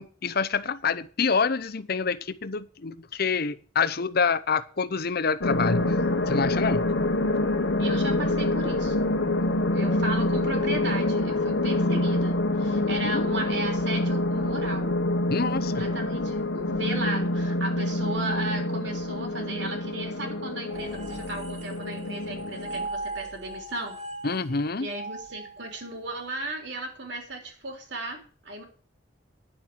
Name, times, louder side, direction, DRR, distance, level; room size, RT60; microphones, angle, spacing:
voice 1, 0.0-6.0 6.3-6.8 13.0-13.3 15.3-15.8 24.2-24.9, left 5 dB, 55° left, 12 dB, 0.8 m, -27 dB
sound 1, 5.4-22.9, left 1 dB, 90° left, 1.3 m, -26 dB
voice 2, 7.8-9.1 9.7-15.0 15.8-24.0 24.8-28.6, right 2 dB, 70° right, 3 dB, 3.6 m, -35 dB
sound 2, 20.7-26.1, right 2 dB, 40° right, 2.8 m, -39 dB
10.5 x 7.3 x 8.0 m, 0.40 s
head